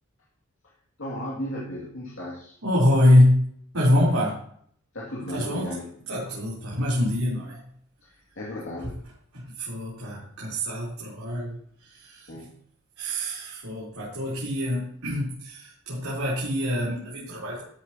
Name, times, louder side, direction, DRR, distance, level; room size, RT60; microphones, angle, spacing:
voice 1, 1.0-2.6 4.9-5.9 8.0-9.0 12.3-12.6, left 1 dB, 60° left, -5 dB, 2.7 m, -35 dB
voice 2, 2.6-3.5 3.7-4.4 5.3-5.8 6.1-7.6 9.3-12.3 13.0-17.6, left 1 dB, 85° right, -7 dB, 4.1 m, -24 dB
14.0 x 8.8 x 3.0 m, 0.62 s
head